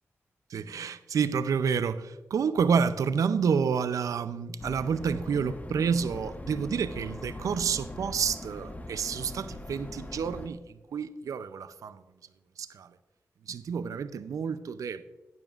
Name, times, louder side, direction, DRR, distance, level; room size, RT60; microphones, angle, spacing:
voice 1, 0.5-12.0 12.6-12.9 13.5-15.0, right 6 dB, 85° right, 0.5 m, -29 dB
sound 1, 4.6-10.5, left 1 dB, 30° left, 1.1 m, -41 dB
12.0 x 11.0 x 2.4 m
cardioid pair, 45°, 6 cm